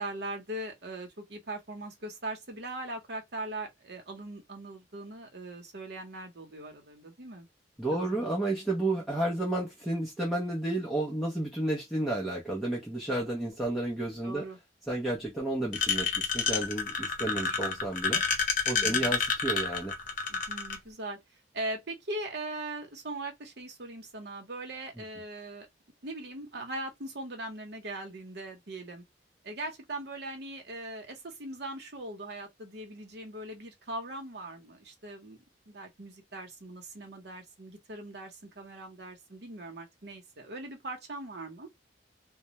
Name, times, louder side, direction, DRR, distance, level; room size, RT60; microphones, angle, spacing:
voice 1, 0.0-7.5 7.9-8.3 14.2-14.6 18.7-19.2 20.3-25.7 26.0-29.0 29.4-35.4 35.7-41.7, right 2 dB, 60° right, 0.8 m, -40 dB
voice 2, 7.8-14.4 14.9-18.2 18.7-19.9, right 1 dB, ahead, 0.6 m, -31 dB
sound 1, 15.7-20.8, left 5 dB, 45° left, 0.7 m, -28 dB
2.2 x 2.1 x 2.8 m
head